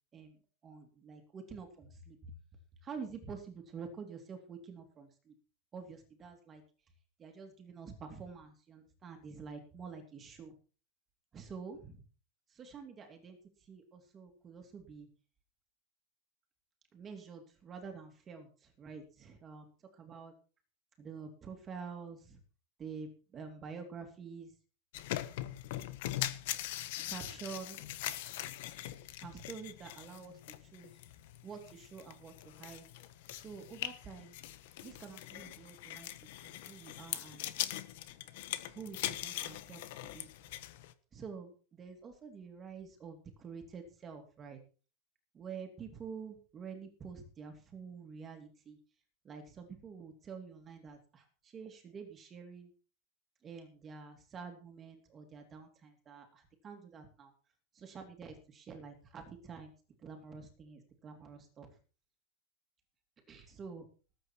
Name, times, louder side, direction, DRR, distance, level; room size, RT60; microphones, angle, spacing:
voice 1, 0.6-2.2 2.8-5.3 5.7-6.6 7.2-10.5 11.3-12.0 12.6-13.4 13.7-15.1 16.9-18.5 18.8-19.7 20.0-20.3 21.0-22.4 22.8-24.5 27.1-27.8 29.2-30.4 30.7-30.9 31.4-32.9 33.3-34.3 34.8-36.1 36.4-37.5 38.7-40.3 41.1-44.6 45.3-48.8 49.2-51.2 51.5-52.7 53.4-57.3 57.7-59.7 60.0-61.7 63.3-63.8, right 5 dB, 20° right, 4 dB, 3.0 m, -48 dB
sound 1, 24.9-40.9, left 14 dB, 65° left, 1.4 m, -42 dB
19.5 x 9.0 x 4.6 m, 0.37 s
supercardioid pair, 165°, 0 cm